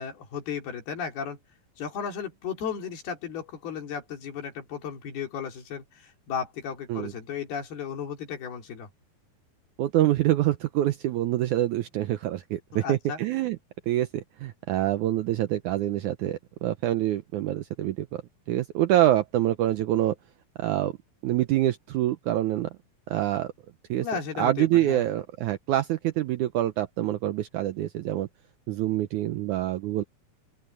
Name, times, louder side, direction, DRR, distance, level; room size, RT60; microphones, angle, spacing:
voice 1, 0.0-1.4 1.8-8.9 12.7-13.2 24.0-25.1, left 7 dB, 85° left, 5.4 m, -34 dB
voice 2, 9.8-13.6 13.9-18.2 18.5-20.2 20.6-20.9 21.2-22.7 23.1-23.5 23.9-24.1 24.4-28.3 28.7-30.0, right 13 dB, 80° right, 1.7 m, -26 dB
open air
omnidirectional pair, 4.3 m